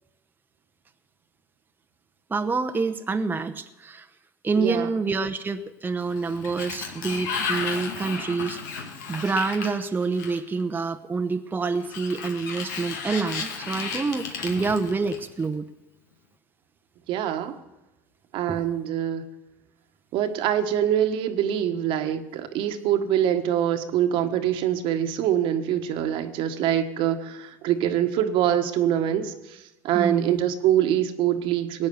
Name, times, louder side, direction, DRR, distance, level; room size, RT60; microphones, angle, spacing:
voice 1, 2.3-4.1 4.4-8.6 9.1-15.7 18.5-18.6 29.9-30.4, right 4 dB, 20° right, 7 dB, 0.9 m, -27 dB
voice 2, 4.6-4.9 17.1-17.5 18.3-19.2 20.1-31.9, right 10 dB, 65° right, 7 dB, 1.5 m, -24 dB
Sliding door, 6.0-10.6 11.8-15.5, left 5 dB, 85° left, 2.2 m, -34 dB
19.0 x 8.8 x 7.1 m, 0.99 s
hypercardioid pair, 80°, 9 cm